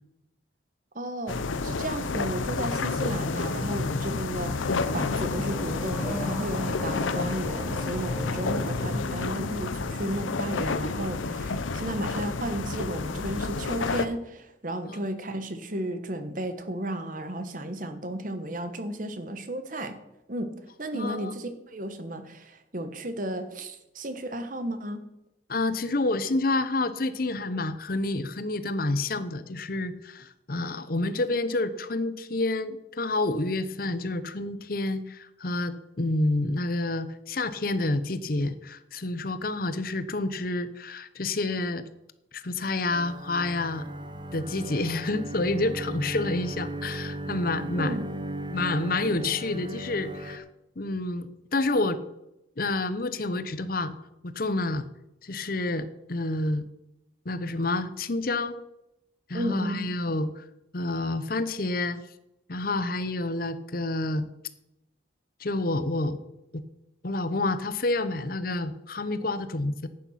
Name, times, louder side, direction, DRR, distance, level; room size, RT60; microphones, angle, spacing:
voice 1, 0.9-19.9 20.3-20.5 20.8-25.0 47.8-48.1 59.3-59.9, right 1 dB, 45° right, 9 dB, 1.2 m, -33 dB
sound 1, 1.3-14.1, left 3 dB, 90° left, 0.7 m, -30 dB
Car / Accelerating revving vroom, 4.3-9.2, left 1 dB, 5° right, 3.0 m, -38 dB
voice 2, 20.9-21.3 25.5-41.8 42.3-43.9 44.3-48.0 48.5-50.4 50.8-52.0 52.6-53.9 54.2-54.9 55.2-56.6 57.2-58.6 59.3-60.4 60.7-62.0 62.5-64.3 65.4-66.2 66.5-66.6 67.0-69.9, left 2 dB, 50° left, 13 dB, 0.8 m, -29 dB
sound 2, 42.9-50.4, right 1 dB, 25° right, 0.9 m, -36 dB
11.0 x 8.7 x 5.8 m, 0.87 s
head